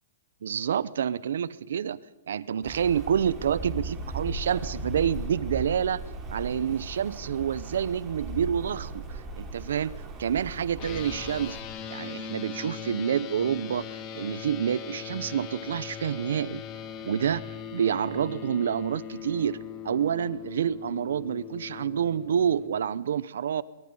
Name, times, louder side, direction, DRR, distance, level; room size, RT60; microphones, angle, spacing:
voice 1, 0.4-2.0 2.3-6.0 6.3-11.6 11.9-16.6 17.0-17.4 17.7-19.6 19.8-23.6, right 8 dB, 80° right, 20 dB, 0.8 m, -28 dB
Rain, 2.6-11.6, right 2 dB, 15° right, 3.7 m, -37 dB
sound 1, 10.8-22.7, left 8 dB, 30° left, 2.4 m, -40 dB
23.5 x 23.5 x 5.5 m, 1.0 s
hypercardioid pair, 155°, 0 cm